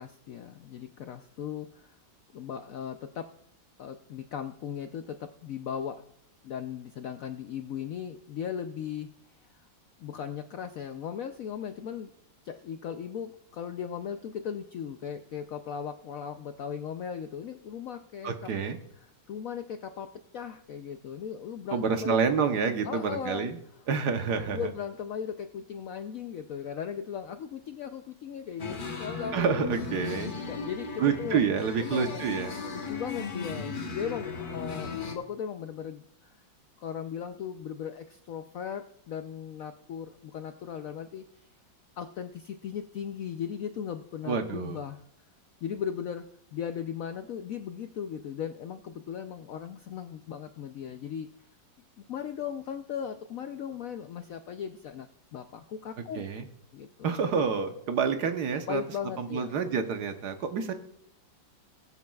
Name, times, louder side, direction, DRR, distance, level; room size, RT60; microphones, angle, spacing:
voice 1, 0.0-2.0 2.3-3.3 3.8-6.0 6.4-9.1 9.4-9.5 10.0-12.1 12.4-18.3 19.3-22.2 22.8-23.5 24.5-29.4 30.5-31.4 31.8-32.3 32.7-36.4 36.8-41.3 42.0-45.0 45.6-46.2 46.5-51.5 52.0-56.3 56.7-57.1 58.7-59.6, left 8 dB, 70° left, 8 dB, 0.8 m, -37 dB
voice 2, 18.2-18.8 21.7-23.6 23.9-24.7 29.3-30.3 31.0-32.5 44.2-44.8 56.1-56.5 57.0-58.8 59.2-60.7, right 6 dB, 65° right, 7 dB, 1.4 m, -28 dB
sound 1, 28.6-35.2, left 4 dB, 35° left, 1.0 m, -36 dB
20.5 x 8.3 x 2.3 m, 0.74 s
omnidirectional pair, 2.0 m